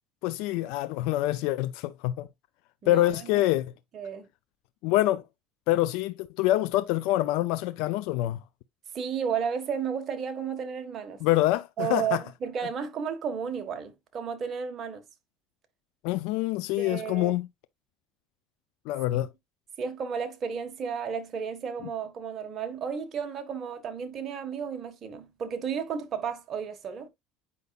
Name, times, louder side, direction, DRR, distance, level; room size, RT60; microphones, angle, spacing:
voice 1, 0.2-2.3 2.9-3.7 4.8-5.2 5.7-8.4 11.2-12.2 16.0-17.5 18.9-19.3, left 16 dB, 75° left, 0.5 m, -26 dB
voice 2, 2.8-3.4 3.9-4.3 8.9-11.2 11.8-15.0 16.8-17.3 19.8-27.1, right 7 dB, 40° right, 1.5 m, -33 dB
8.4 x 5.2 x 2.4 m
supercardioid pair, 105°, 0 cm